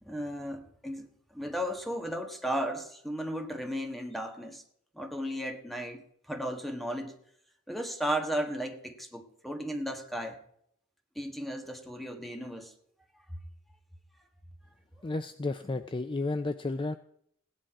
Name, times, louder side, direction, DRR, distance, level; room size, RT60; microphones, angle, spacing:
voice 1, 0.0-4.6 4.9-7.1 7.7-10.4 11.1-12.7 13.3-13.4, equal, ahead, 1.4 m, -35 dB
voice 2, 15.0-16.9, left 3 dB, 25° left, 0.4 m, -32 dB
16.5 x 10.0 x 4.7 m
head